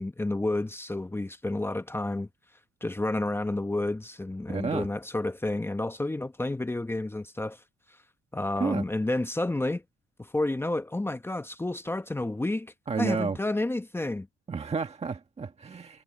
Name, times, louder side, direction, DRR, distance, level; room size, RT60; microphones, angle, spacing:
voice 1, 0.0-2.3 2.8-7.6 8.3-9.8 10.2-14.3, left 2 dB, 10° left, 1.0 m, -30 dB
voice 2, 4.5-4.9 8.6-8.8 12.9-13.4 14.5-16.0, right 5 dB, 30° right, 1.6 m, -31 dB
cardioid pair, 90°, 20 cm